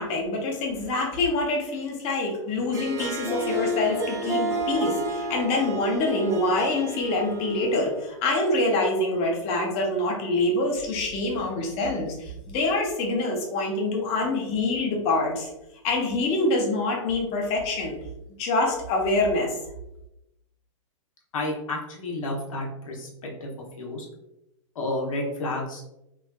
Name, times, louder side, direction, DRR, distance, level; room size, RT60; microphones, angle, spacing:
voice 1, 0.0-15.5 15.8-18.0 18.4-19.5, left 2 dB, 35° left, 1 dB, 0.8 m, -25 dB
Harp, 2.6-8.0, right 1 dB, 20° right, 0.4 m, -31 dB
voice 2, 21.3-23.1 23.4-23.5 23.8-24.1 24.7-25.8, left 2 dB, 85° left, -1 dB, 0.9 m, -30 dB
3.2 x 2.5 x 2.2 m, 0.89 s
hypercardioid pair, 130°, 17 cm